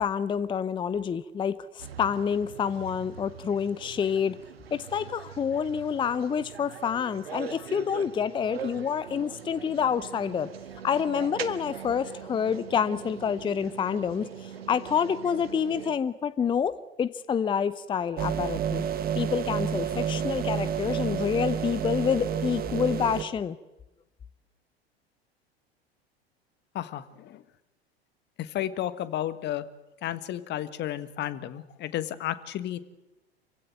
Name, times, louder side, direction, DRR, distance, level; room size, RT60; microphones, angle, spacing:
voice 1, 0.0-4.4 4.7-10.5 10.8-18.8 19.2-23.6, left 7 dB, 15° left, 16 dB, 0.7 m, -28 dB
sound 1, 1.8-16.0, right 8 dB, 70° right, 1.6 m, -42 dB
sound 2, 18.2-23.2, right 8 dB, 30° right, 1.9 m, -29 dB
voice 2, 26.7-27.4 28.4-29.6 30.0-32.8, left 12 dB, 35° left, 14 dB, 1.5 m, -32 dB
27.0 x 16.5 x 9.3 m, 1.0 s
figure-of-eight pair, 80°, 32 cm